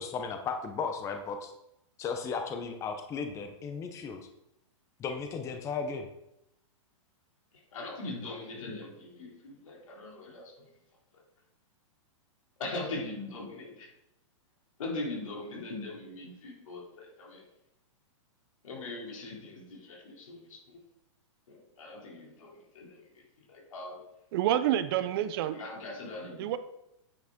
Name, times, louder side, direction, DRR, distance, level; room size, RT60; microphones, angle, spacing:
voice 1, 0.0-1.5 2.0-4.2 5.0-6.1, left 5 dB, 15° left, 5 dB, 0.6 m, -35 dB
voice 2, 7.5-10.7 11.1-11.2 12.6-13.9 14.8-17.4 18.6-20.8 21.5-24.0 25.0-25.1 25.5-26.5, left 2 dB, 85° left, -2 dB, 2.9 m, -41 dB
voice 3, 24.3-25.6 26.4-26.6, right 12 dB, 45° right, 12 dB, 0.6 m, -28 dB
9.0 x 5.9 x 3.6 m, 0.84 s
hypercardioid pair, 150°, 17 cm